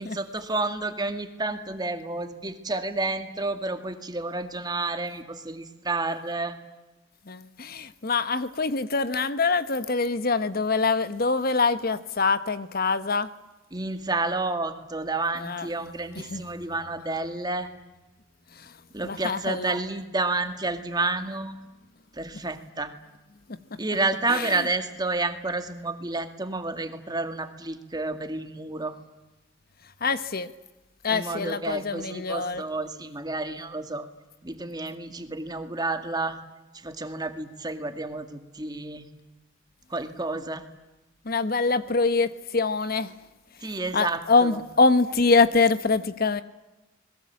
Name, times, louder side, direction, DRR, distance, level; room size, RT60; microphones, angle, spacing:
voice 1, 0.0-6.6 13.7-17.7 18.9-21.5 22.1-22.9 23.8-28.9 31.1-34.1 34.4-36.4 36.7-39.1 39.9-40.6 43.6-44.5, right 2 dB, 20° right, 8 dB, 2.1 m, -30 dB
voice 2, 7.3-13.3 15.4-15.7 16.2-16.4 18.5-18.8 19.0-19.8 24.3-24.7 30.0-30.5 31.0-32.6 41.2-43.1 43.6-46.4, left 4 dB, 50° left, 13 dB, 1.0 m, -24 dB
29.0 x 21.5 x 8.6 m, 1.0 s
head